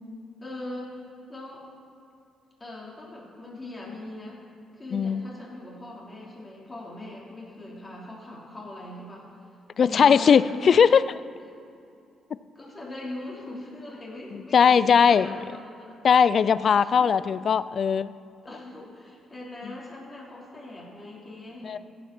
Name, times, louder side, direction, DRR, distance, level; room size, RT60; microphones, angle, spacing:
voice 1, 0.4-1.0 1.3-1.6 2.6-4.4 4.7-9.3 9.8-10.8 12.5-15.9 16.7-17.1 18.4-21.8, left 2 dB, 25° left, -5 dB, 3.1 m, -40 dB
voice 2, 4.9-5.2 9.8-11.0 14.3-15.4 16.0-18.1 21.6-21.8, left 7 dB, 50° left, 16 dB, 0.4 m, -19 dB
16.0 x 5.9 x 5.9 m, 2.5 s
cardioid pair, 90°, 0 cm